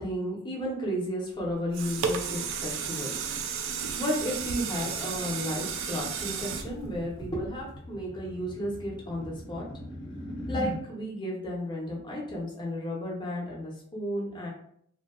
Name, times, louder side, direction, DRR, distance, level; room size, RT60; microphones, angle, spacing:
voice 1, 0.0-3.1 4.0-9.7 10.5-14.5, equal, 20° left, -3 dB, 0.6 m, -33 dB
sound 1, 1.4-7.8 8.3-8.4, right 6 dB, 65° right, 0.3 m, -33 dB
sound 2, 5.8-10.8, left 1 dB, 80° left, 0.6 m, -40 dB
2.6 x 2.1 x 2.3 m, 0.66 s
head